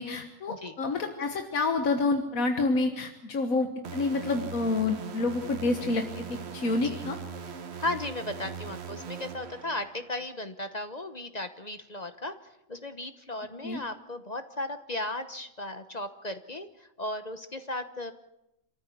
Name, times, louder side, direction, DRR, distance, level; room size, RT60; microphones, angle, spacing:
voice 1, 0.0-7.2 13.6-13.8, left 3 dB, 85° left, 5 dB, 1.9 m, -28 dB
sound 1, 3.8-10.3, right 6 dB, 55° right, 1.2 m, -40 dB
voice 2, 7.8-12.3 12.7-16.7 17.0-18.1, left 2 dB, 30° left, 9 dB, 1.1 m, -36 dB
27.5 x 14.0 x 8.6 m, 0.87 s
omnidirectional pair, 1.4 m